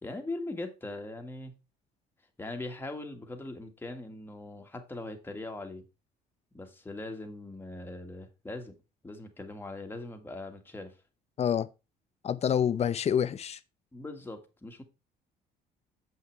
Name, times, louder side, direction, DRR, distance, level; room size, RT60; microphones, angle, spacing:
voice 1, 0.0-1.5 2.4-5.8 6.5-8.8 9.0-10.9 13.9-14.8, left 2 dB, 15° left, 1.9 m, -40 dB
voice 2, 11.4-11.7 12.2-13.6, left 8 dB, 40° left, 0.7 m, -27 dB
8.0 x 5.7 x 4.7 m
cardioid pair, 110°, 17 cm